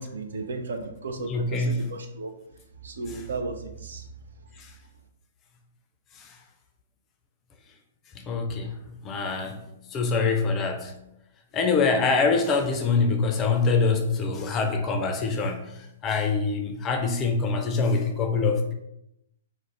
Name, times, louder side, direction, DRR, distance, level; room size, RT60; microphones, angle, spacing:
voice 1, 0.0-2.3 2.8-4.0, right 3 dB, 70° right, 5 dB, 0.4 m, -34 dB
voice 2, 1.3-1.8 8.3-8.7 9.0-9.6 9.9-10.9 11.5-15.7 16.0-18.7, left 4 dB, 25° left, 5 dB, 0.4 m, -24 dB
2.4 x 2.1 x 3.1 m, 0.82 s
figure-of-eight pair, 120°, 0 cm